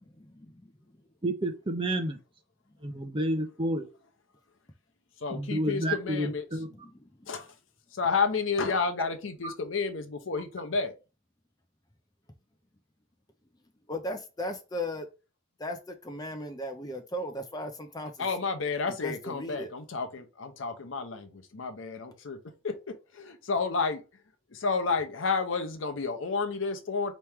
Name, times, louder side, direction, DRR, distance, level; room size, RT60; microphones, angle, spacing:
voice 1, 0.3-1.0 2.7-2.8 6.7-7.4 13.9-15.1 15.6-18.3 18.9-19.7, left 1 dB, 20° left, 0.6 m, -37 dB
voice 2, 1.2-2.2 2.8-3.9 5.3-6.7, right 1 dB, 25° right, 0.7 m, -30 dB
voice 3, 5.2-6.4 7.3-7.5 7.9-10.9 18.2-22.4 22.6-24.0 24.5-27.1, left 4 dB, 75° left, 0.7 m, -31 dB
4.4 x 3.0 x 3.5 m
head